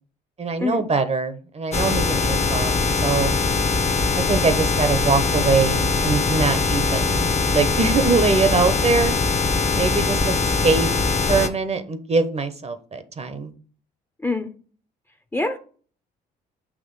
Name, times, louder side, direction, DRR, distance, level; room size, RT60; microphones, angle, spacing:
voice 1, 0.4-2.7 3.0-3.3 4.1-9.2 9.7-10.3 10.6-10.9 11.3-13.5, right 4 dB, 35° right, 1.0 m, -22 dB
sound 1, 1.7-11.5, left 4 dB, 35° left, 1.1 m, -21 dB
voice 2, 14.2-14.5 15.3-15.6, left 2 dB, 10° left, 0.9 m, -24 dB
6.2 x 2.9 x 5.5 m
hypercardioid pair, 60°, 20 cm